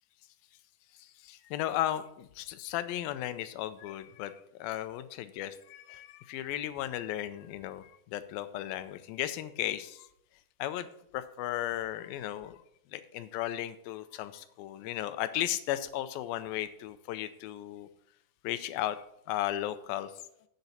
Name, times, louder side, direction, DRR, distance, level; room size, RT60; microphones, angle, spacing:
voice 1, 1.0-4.3 4.6-10.1 10.6-10.9 11.1-12.6 12.9-17.9 18.4-19.0 19.3-20.1, left 13 dB, 90° left, 12 dB, 2.5 m, -35 dB
10.5 x 8.1 x 4.2 m, 0.75 s
omnidirectional pair, 4.1 m